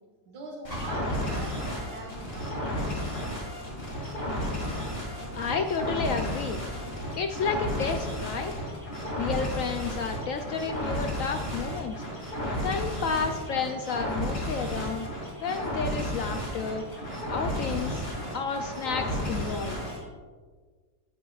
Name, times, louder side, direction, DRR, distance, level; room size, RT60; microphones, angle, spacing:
voice 1, 0.2-2.6, right 2 dB, 75° right, 0 dB, 2.0 m, -42 dB
sound 1, 0.6-20.0, equal, 35° left, 2.6 m, -33 dB
voice 2, 5.3-6.6 7.2-8.5 9.2-12.0 12.6-15.1 15.4-16.8 17.3-18.1 18.3-19.8, left 5 dB, 70° left, 6 dB, 0.8 m, -31 dB
12.5 x 8.4 x 2.4 m, 1.5 s
omnidirectional pair, 1.8 m